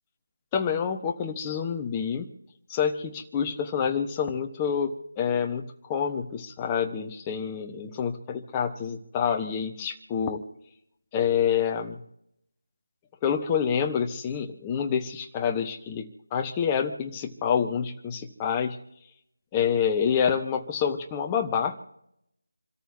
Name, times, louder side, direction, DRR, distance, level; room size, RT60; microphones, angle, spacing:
voice 1, 0.5-2.3 2.7-10.4 11.1-12.0 13.2-18.8 19.5-21.8, left 7 dB, 15° left, 4 dB, 1.3 m, -27 dB
28.5 x 14.0 x 2.9 m, 0.78 s
figure-of-eight pair, 165°, 0 cm